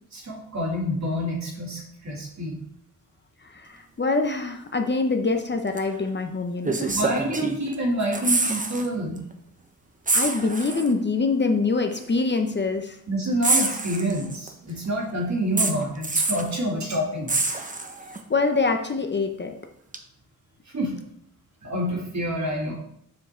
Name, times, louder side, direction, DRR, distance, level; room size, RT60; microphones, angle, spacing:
voice 1, 0.1-2.6 6.8-9.2 13.1-17.6 20.7-21.0 21.6-22.8, equal, 50° right, -1 dB, 2.5 m, -27 dB
voice 2, 3.4-7.0 10.1-13.0 18.3-19.6, left 3 dB, 30° left, 5 dB, 0.7 m, -25 dB
sound 1, 5.8-5.9 6.6-7.7 8.0-8.9 9.2-9.3 10.1-10.9 12.0-12.1 13.4-14.5 15.6-16.5 17.3-18.2 19.9-20.0, right 3 dB, 25° right, 0.9 m, -25 dB
7.3 x 5.1 x 4.4 m, 0.71 s
wide cardioid pair, 95°, 34 cm